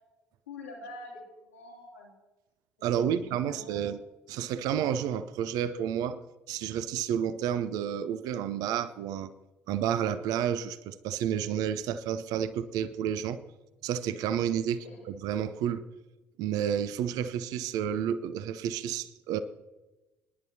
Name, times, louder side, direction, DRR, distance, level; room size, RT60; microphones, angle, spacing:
voice 1, 0.5-1.2 1.5-2.1 3.1-3.9 14.8-15.0, left 2 dB, 85° left, -2 dB, 2.6 m, -45 dB
voice 2, 2.8-4.0 4.3-9.3 9.7-13.4 13.8-15.8 16.4-19.4, right 9 dB, 60° right, 13 dB, 0.6 m, -30 dB
26.0 x 10.5 x 2.8 m, 1.1 s
figure-of-eight pair, 50°, 7 cm